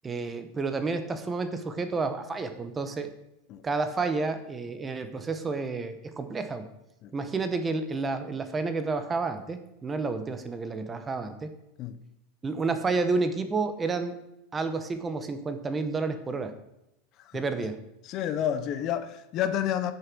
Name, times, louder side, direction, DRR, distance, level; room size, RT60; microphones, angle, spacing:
voice 1, 0.0-3.1 3.6-6.7 7.1-11.5 12.4-14.2 14.5-16.5 17.3-17.8, right 4 dB, 15° right, 0.9 m, -30 dB
voice 2, 18.0-19.9, left 10 dB, 40° left, 0.8 m, -30 dB
9.0 x 6.8 x 6.1 m
supercardioid pair, 145°, 0 cm